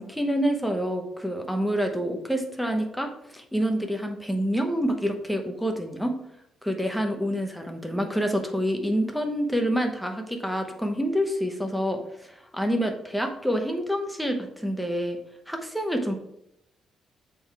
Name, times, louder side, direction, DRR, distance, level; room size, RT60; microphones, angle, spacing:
voice 1, 0.0-6.1 6.6-15.2 15.5-16.2, equal, ahead, 3 dB, 0.9 m, -27 dB
6.9 x 3.8 x 4.6 m, 0.79 s
cardioid pair, 140°, 0 cm